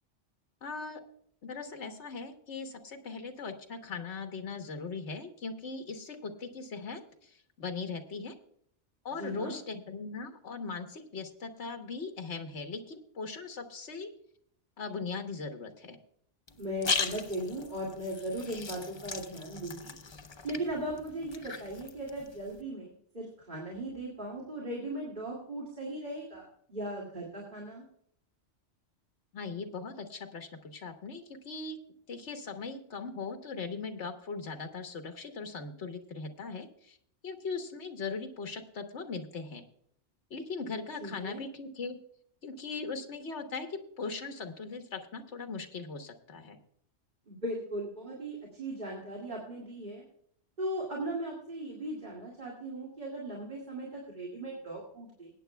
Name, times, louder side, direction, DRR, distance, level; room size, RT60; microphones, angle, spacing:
voice 1, 0.6-1.0 1.4-8.4 9.0-14.1 14.8-16.0 29.3-31.8 32.1-37.0 37.2-39.6 40.3-42.0 42.4-46.6, left 4 dB, 70° left, 6 dB, 1.5 m, -39 dB
voice 2, 9.2-9.6 16.6-19.9 20.4-27.9 41.0-41.4 47.3-50.0 50.6-55.3, right 1 dB, 40° right, -4 dB, 2.5 m, -38 dB
sound 1, 16.5-22.6, left 4 dB, 30° left, 0.5 m, -38 dB
21.0 x 9.1 x 2.3 m, 0.68 s
omnidirectional pair, 1.2 m